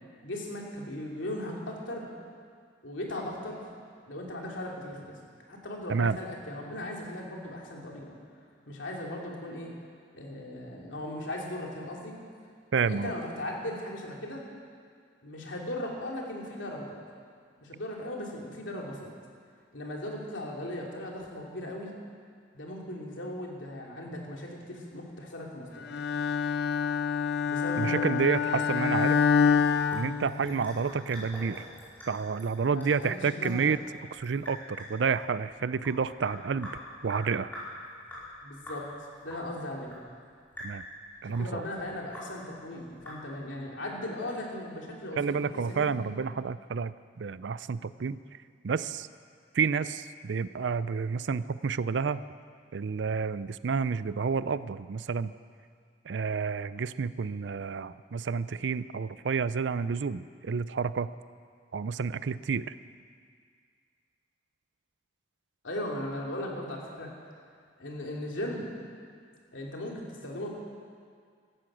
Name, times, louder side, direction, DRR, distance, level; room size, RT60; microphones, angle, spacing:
voice 1, 0.2-2.1 2.8-3.6 4.1-5.2 5.5-8.2 8.7-9.7 10.1-12.2 12.8-14.4 15.2-17.0 17.6-19.1 19.7-21.9 22.5-25.9 27.4-28.2 29.1-29.2 32.7-33.7 38.4-38.9 39.2-40.0 41.3-46.1 65.6-67.1 67.8-68.7 69.5-70.5, left 1 dB, 90° left, -1 dB, 2.9 m, -38 dB
voice 2, 12.7-13.1 27.8-29.2 29.9-31.7 32.1-33.8 34.1-36.7 37.0-37.5 40.6-40.8 41.2-41.6 45.2-48.2 48.6-49.1 49.5-52.2 52.7-55.3 56.1-61.1 61.7-62.7, right 5 dB, 70° right, 16 dB, 0.5 m, -30 dB
Bowed string instrument, 25.9-30.9, left 6 dB, 60° left, 0.5 m, -27 dB
Sink (filling or washing) / Drip, 29.1-43.6, left 1 dB, 10° left, 4.7 m, -46 dB
16.5 x 13.5 x 6.2 m, 2.1 s
head